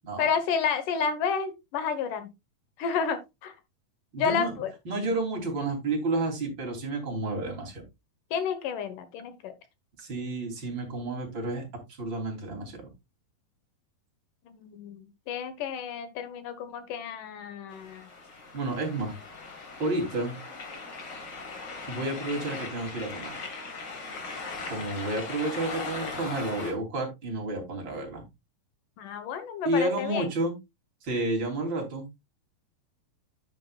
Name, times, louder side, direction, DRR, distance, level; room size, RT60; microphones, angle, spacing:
voice 1, 0.2-2.3 2.8-3.5 4.2-4.7 8.3-9.5 14.5-18.1 29.0-30.3, left 6 dB, 65° left, 2.6 m, -30 dB
voice 2, 4.1-4.5 4.9-7.8 10.0-12.9 18.5-19.2 19.8-20.4 21.9-23.4 24.7-28.3 29.7-30.5 31.0-32.1, right 2 dB, 30° right, 3.6 m, -31 dB
sound 1, 17.7-26.7, left 4 dB, 40° left, 1.9 m, -39 dB
10.5 x 9.0 x 2.4 m
omnidirectional pair, 4.3 m